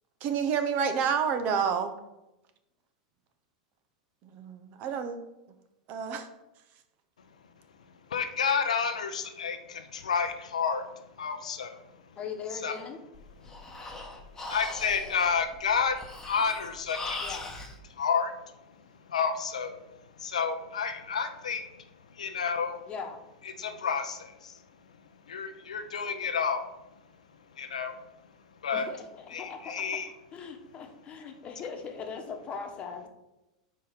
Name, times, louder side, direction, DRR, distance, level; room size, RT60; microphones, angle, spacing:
voice 1, 0.2-1.9 4.2-5.2 5.9-6.3, right 7 dB, 45° right, 8 dB, 0.8 m, -29 dB
voice 2, 8.1-10.9 11.2-11.8 12.6-12.7 13.9-14.0 14.5-17.4 18.0-18.4 19.1-19.8 20.2-21.8 22.1-22.9 23.6-24.6 25.3-26.7 27.5-28.0 28.6-28.9 29.3-30.1, left 6 dB, 90° left, 7 dB, 0.7 m, -30 dB
voice 3, 12.2-13.0 17.2-17.6 22.9-23.2 28.7-33.1, left 5 dB, 35° left, 4 dB, 1.1 m, -40 dB
Breathing, 13.1-17.7, left 3 dB, 15° left, 1.1 m, -40 dB
4.8 x 4.2 x 5.8 m, 0.93 s
hypercardioid pair, 105°, 4 cm